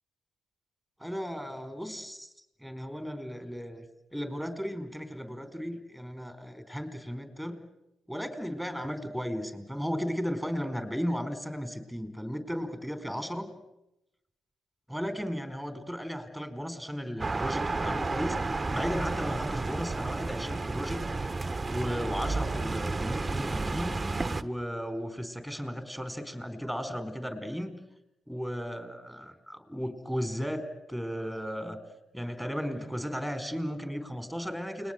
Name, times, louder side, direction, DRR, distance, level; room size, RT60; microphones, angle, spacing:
voice 1, 1.0-2.3 2.6-3.9 4.1-7.6 8.1-13.5 14.9-24.0 24.4-27.7 28.3-31.8 32.1-34.9, equal, 5° left, 9 dB, 4.5 m, -35 dB
sound 1, 17.2-24.4, right 3 dB, 25° right, 1.4 m, -31 dB
29.5 x 21.0 x 8.3 m, 0.89 s
hypercardioid pair, 45°, 0 cm